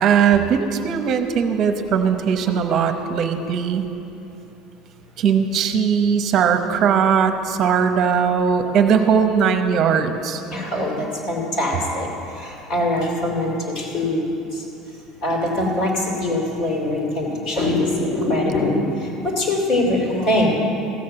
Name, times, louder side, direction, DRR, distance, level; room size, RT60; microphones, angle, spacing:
voice 1, 0.0-3.9 5.2-10.4, right 7 dB, 40° right, 7 dB, 0.9 m, -19 dB
voice 2, 2.0-2.6 10.5-14.2 14.5-14.7 14.9-20.5, left 1 dB, 50° left, -2 dB, 2.6 m, -23 dB
15.0 x 6.6 x 7.6 m, 2.9 s
cardioid pair, 155°, 0 cm